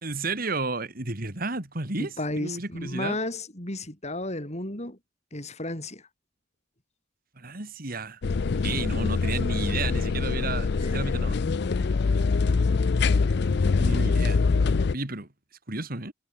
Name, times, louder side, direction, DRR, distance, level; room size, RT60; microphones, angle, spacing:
voice 1, 0.0-3.2 7.4-8.2 8.6-11.9 13.6-14.4 14.9-15.3 15.7-16.1, right 3 dB, 50° right, 3.0 m, -32 dB
voice 2, 2.0-5.0 5.3-6.0 10.8-11.0, left 1 dB, 35° left, 5.8 m, -33 dB
sound 1, 8.2-14.9, left 4 dB, 60° left, 0.5 m, -24 dB
head